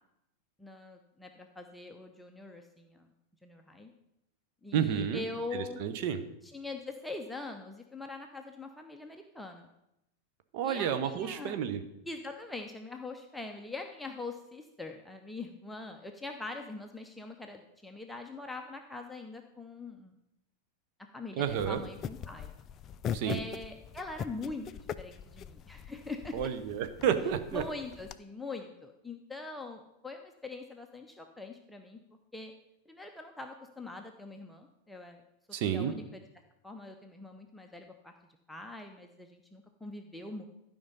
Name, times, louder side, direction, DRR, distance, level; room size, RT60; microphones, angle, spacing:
voice 1, 0.6-3.1 3.4-3.9 4.6-5.8 6.4-9.7 10.6-11.6 12.1-20.2 21.1-22.5 23.2-26.5 27.5-32.0 32.3-32.5 32.9-35.2 35.6-36.2 36.6-38.1 38.5-40.5, left 3 dB, 5° left, 3 dB, 0.7 m, -43 dB
voice 2, 4.7-5.2 5.5-6.2 10.5-11.8 21.4-21.8 23.1-23.4 26.3-27.6 35.5-35.9, right 8 dB, 45° right, 9 dB, 0.9 m, -31 dB
sound 1, 21.5-28.1, left 8 dB, 30° left, 0.4 m, -42 dB
12.0 x 5.2 x 5.5 m, 0.84 s
figure-of-eight pair, 90°, 0 cm